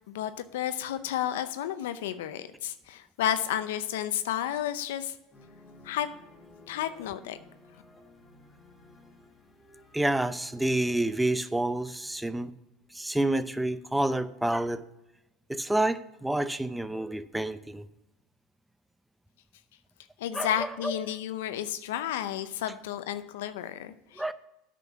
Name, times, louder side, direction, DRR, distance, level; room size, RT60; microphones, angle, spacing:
voice 1, 0.1-5.1 5.8-6.1 6.7-7.4 20.2-24.3, left 11 dB, 85° left, 0.6 m, -32 dB
sound 1, 5.3-11.3, left 2 dB, 20° left, 2.6 m, -54 dB
voice 2, 9.9-12.5 12.9-14.8 15.5-17.9 20.3-21.0 24.2-24.3, right 1 dB, 5° right, 0.6 m, -29 dB
9.1 x 6.1 x 5.8 m
supercardioid pair, 100°, 0 cm